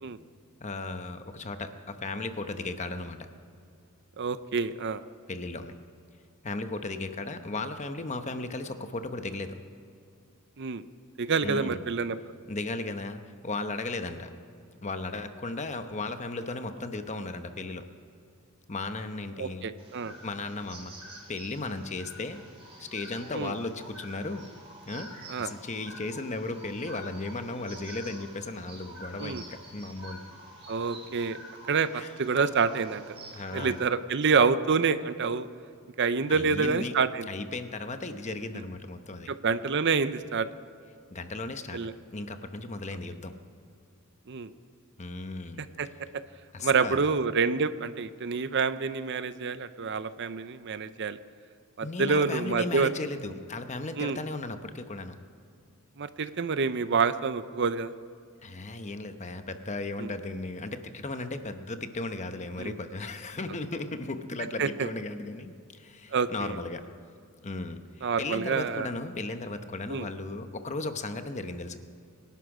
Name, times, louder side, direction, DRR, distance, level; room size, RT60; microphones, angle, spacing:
voice 1, 0.6-3.3 5.3-5.7 6.4-9.6 11.4-11.8 12.5-14.3 14.8-17.8 18.7-19.7 20.2-20.9 21.3-22.4 22.8-24.5 24.9-25.1 25.4-30.3 31.9-32.4 33.3-33.8 36.3-36.9 37.3-39.3 41.1-41.8 42.1-43.3 45.0-45.7 46.5-47.0 51.8-55.2 58.4-66.9 67.4-71.8, left 2 dB, 30° left, 8 dB, 0.9 m, -36 dB
voice 2, 4.2-5.0 10.6-10.8 11.2-12.2 19.4-20.1 23.3-23.5 25.3-25.5 29.2-29.4 30.7-31.4 31.7-33.2 33.5-35.5 36.0-37.3 39.3-40.5 41.7-41.9 44.3-44.5 45.8-45.9 46.1-46.2 46.6-51.2 51.8-52.9 54.0-54.2 56.0-57.9 60.0-60.1 62.6-62.7 64.6-64.9 66.1-66.6 68.0-68.9 69.9-70.1, right 5 dB, 55° right, 13 dB, 0.6 m, -27 dB
sound 1, 19.8-33.8, right 1 dB, 25° right, 4.2 m, -48 dB
25.0 x 11.5 x 4.9 m, 2.4 s
head